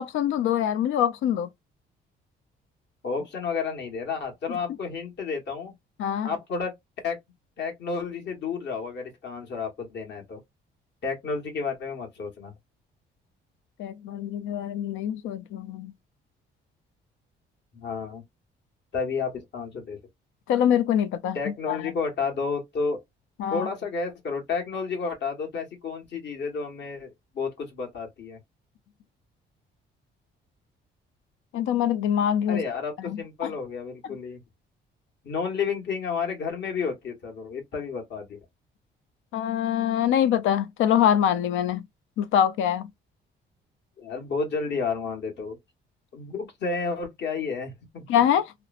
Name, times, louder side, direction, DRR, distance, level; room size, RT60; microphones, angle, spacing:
voice 1, 0.0-1.5 4.5-4.6 6.0-6.3 13.8-15.9 20.5-21.9 23.4-23.7 31.5-32.6 33.0-33.5 39.3-41.8 42.2-42.9 48.1-48.5, left 9 dB, 85° left, 0.5 m, -24 dB
voice 2, 3.0-5.7 6.2-6.7 7.0-7.2 7.6-10.4 11.0-12.5 17.7-18.2 18.9-20.0 21.3-23.0 23.5-28.4 32.5-34.4 35.2-38.4 44.0-45.6 46.1-48.1, left 5 dB, 60° left, 1.3 m, -31 dB
2.9 x 2.1 x 2.3 m
cardioid pair, 90°, 20 cm